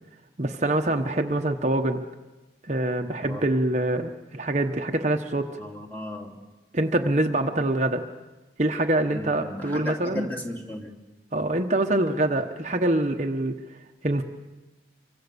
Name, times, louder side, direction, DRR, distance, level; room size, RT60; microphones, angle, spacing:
voice 1, 0.4-2.0 2.7-5.5 6.7-8.0 8.6-10.3 11.3-13.5 14.0-14.2, right 1 dB, 40° right, 4 dB, 1.1 m, -25 dB
voice 2, 3.1-3.4 5.6-6.4 9.1-10.9, left 1 dB, 10° left, 0 dB, 2.8 m, -35 dB
26.5 x 24.5 x 6.9 m, 1.1 s
head